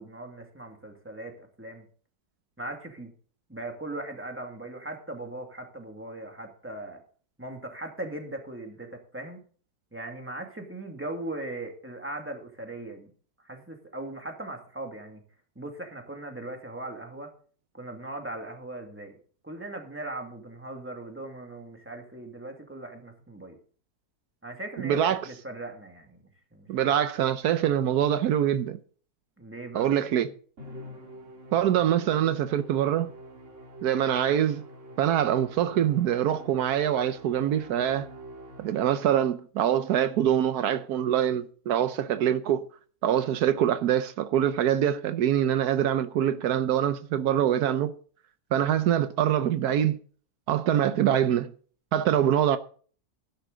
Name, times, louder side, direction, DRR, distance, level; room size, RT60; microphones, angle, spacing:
voice 1, 0.0-1.9 2.6-3.1 3.5-7.0 7.4-9.4 9.9-13.1 13.4-15.2 15.6-17.3 17.7-19.1 19.4-23.6 24.4-26.2 26.5-26.7 29.4-29.9, right 2 dB, 10° right, 2.1 m, -39 dB
voice 2, 24.8-25.2 26.7-28.8 29.7-30.3 31.5-33.1 33.8-34.6 35.0-38.1 38.6-42.7 43.0-47.9 48.5-50.0 50.5-51.5 51.9-52.6, right 10 dB, 80° right, 1.2 m, -24 dB
Musical instrument, 30.6-39.1, right 1 dB, 50° right, 2.5 m, -46 dB
13.0 x 11.5 x 3.9 m
omnidirectional pair, 1.6 m